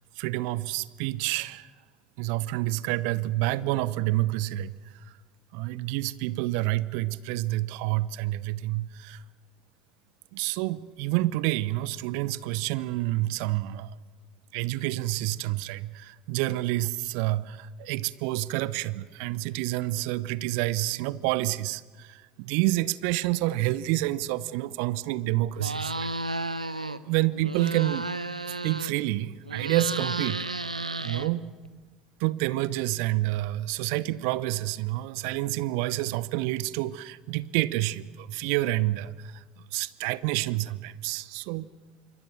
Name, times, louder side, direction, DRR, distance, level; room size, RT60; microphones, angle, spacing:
voice 1, 0.2-1.7 2.2-4.7 5.5-9.2 10.3-14.0 14.5-26.1 27.1-28.1 28.6-30.5 31.0-31.5 32.2-39.4 39.7-41.7, right 17 dB, 60° right, 0.8 m, -28 dB
sound 1, 25.6-27.0 27.3-29.1 29.4-31.7, right 2 dB, 90° right, 0.7 m, -33 dB
26.5 x 24.0 x 6.4 m
figure-of-eight pair, 65°, 4 cm